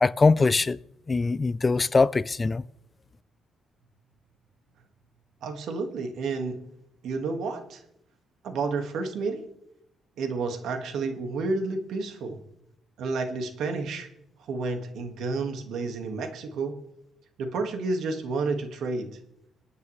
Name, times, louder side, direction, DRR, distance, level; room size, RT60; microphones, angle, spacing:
voice 1, 0.0-0.8 1.1-2.6, left 3 dB, 30° left, 0.4 m, -22 dB
voice 2, 5.4-6.6 7.0-7.8 8.4-9.5 10.2-12.4 13.0-14.1 14.4-16.8 17.4-19.1, right 3 dB, 75° right, 1.9 m, -30 dB
27.0 x 9.4 x 3.3 m
cardioid pair, 90°, 0 cm